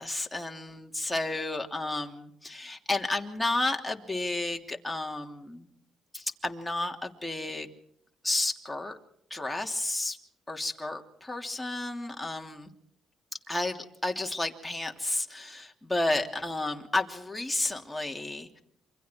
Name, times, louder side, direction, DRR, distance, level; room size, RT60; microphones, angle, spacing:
voice 1, 0.0-5.7 6.1-7.7 8.2-9.0 9.3-10.2 10.5-12.7 13.5-18.5, left 2 dB, 10° left, 2 dB, 3.0 m, -32 dB
28.0 x 25.0 x 4.6 m, 0.70 s
cardioid pair, 90°, 0 cm